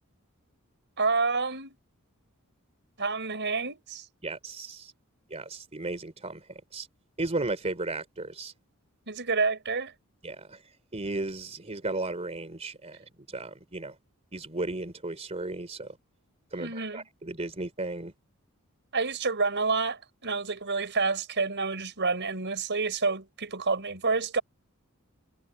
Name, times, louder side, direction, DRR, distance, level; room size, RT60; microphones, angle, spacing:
voice 1, 1.0-1.7 3.0-4.0 9.1-9.9 16.6-17.0 18.9-24.4, right 4 dB, 55° right, 5.7 m, -28 dB
voice 2, 4.2-4.9 5.3-6.9 7.2-8.5 10.2-10.6 10.9-13.0 13.3-13.9 14.3-16.0 16.5-18.1, right 2 dB, 30° right, 3.2 m, -35 dB
head